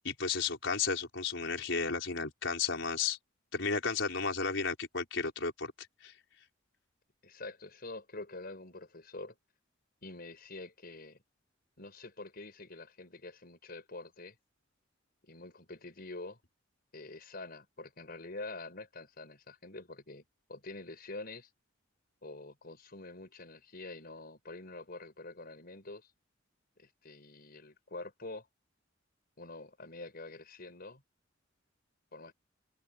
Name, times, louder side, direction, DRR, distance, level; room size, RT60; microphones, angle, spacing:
voice 1, 0.0-3.2 3.5-5.7 6.0-6.1, left 5 dB, 65° left, 5.5 m, -33 dB
voice 2, 7.2-9.4 10.0-11.2 11.8-14.4 15.2-16.4 16.9-20.2 20.5-21.5 22.2-26.1 26.8-28.5 29.4-31.0 32.1-32.3, left 2 dB, 50° left, 5.6 m, -46 dB
head